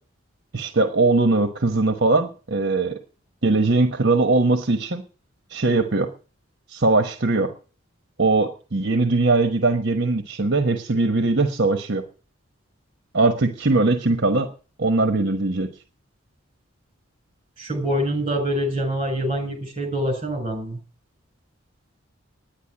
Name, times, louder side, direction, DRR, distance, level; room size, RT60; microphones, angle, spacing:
voice 1, 0.5-3.0 3.4-5.0 5.5-6.1 6.7-7.5 8.2-12.0 13.1-14.5 14.8-15.7, right 3 dB, 55° right, 7 dB, 1.2 m, -20 dB
voice 2, 17.6-20.8, equal, 30° right, 3 dB, 7.7 m, -25 dB
10.5 x 10.5 x 8.7 m, 0.40 s
head